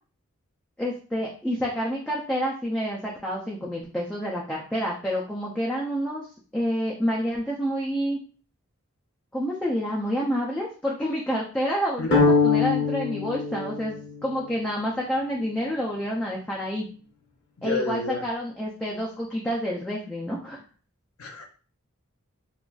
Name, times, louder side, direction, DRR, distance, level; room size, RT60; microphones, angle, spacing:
voice 1, 0.8-6.3 6.5-8.2 9.3-14.0 14.2-16.9 17.6-20.6, equal, 5° left, -4 dB, 0.4 m, -28 dB
sound 1, 12.1-14.4, left 4 dB, 50° left, 0.7 m, -23 dB
voice 2, 17.6-18.2 21.2-21.4, left 3 dB, 85° left, 4 dB, 0.6 m, -30 dB
3.8 x 2.4 x 2.3 m, 0.40 s
head